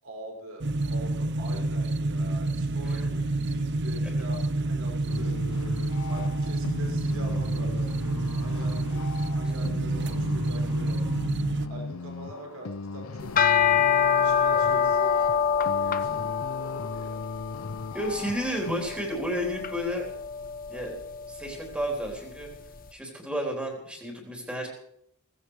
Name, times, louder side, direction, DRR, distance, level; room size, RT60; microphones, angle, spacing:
voice 1, 0.0-11.1 11.7-13.6 14.2-16.2 16.5-17.2, right 1 dB, 75° right, 0 dB, 5.8 m, -44 dB
sound 1, 0.6-11.7, right 2 dB, 55° right, 0.7 m, -28 dB
sound 2, 5.1-18.9, left 4 dB, 75° left, 0.8 m, -38 dB
sound 3, 13.2-22.6, left 7 dB, 40° left, 0.9 m, -26 dB
voice 2, 17.9-20.1 20.7-21.0 21.3-22.5 22.9-24.7, equal, 5° right, 0 dB, 3.8 m, -32 dB
18.5 x 15.5 x 4.9 m, 0.72 s
head